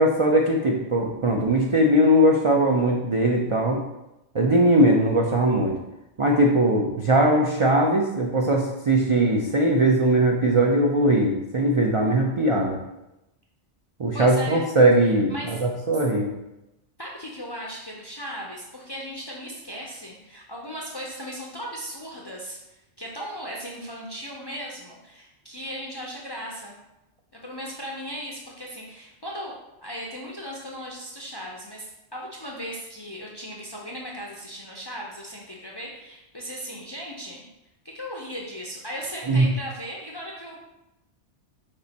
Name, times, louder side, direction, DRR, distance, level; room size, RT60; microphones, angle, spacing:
voice 1, 0.0-3.8 4.3-5.7 6.2-12.8 14.0-16.3 39.3-39.5, right 1 dB, 55° right, -1 dB, 0.3 m, -20 dB
voice 2, 4.5-4.9 14.1-14.6 15.0-15.6 15.9-16.0 17.0-26.7 27.3-29.5 29.8-37.5 37.8-40.6, equal, 35° left, -3 dB, 0.4 m, -37 dB
5.2 x 2.5 x 4.0 m, 0.93 s
omnidirectional pair, 1.2 m